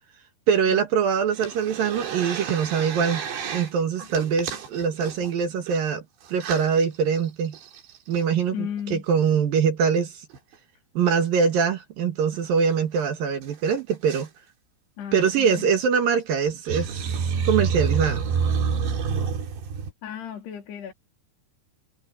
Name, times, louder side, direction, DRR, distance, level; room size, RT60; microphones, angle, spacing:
voice 1, 0.5-3.2 3.5-6.0 6.3-7.6 8.1-10.2 10.9-14.3 15.1-17.2 17.4-18.2, right 6 dB, 65° right, 3.2 m, -23 dB
sound 1, 1.3-3.7 4.0-5.8 6.3-6.7 7.2-7.3 7.5-8.2 10.3-10.5 12.3-12.4 12.7-12.8 13.0-13.1 13.4-14.3 15.3-15.6 16.5-19.9, right 6 dB, 85° right, 5.4 m, -28 dB
voice 2, 8.5-9.0 15.0-15.7 20.0-20.9, left 8 dB, 75° left, 4.9 m, -34 dB
omnidirectional pair, 4.9 m